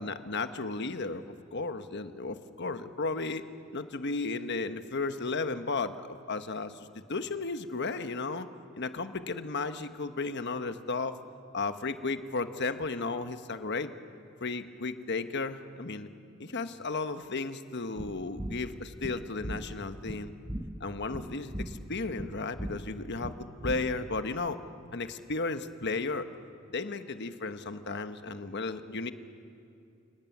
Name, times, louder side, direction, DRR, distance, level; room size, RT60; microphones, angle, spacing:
voice 1, 0.0-3.5 3.7-8.5 8.7-11.2 11.5-13.9 14.4-16.1 16.4-20.3 20.8-24.6 24.9-26.3 26.7-29.1, left 3 dB, 50° left, 9 dB, 1.2 m, -34 dB
sound 1, 18.0-24.2, right 1 dB, 15° right, 1.1 m, -39 dB
29.0 x 18.5 x 9.4 m, 2.6 s
head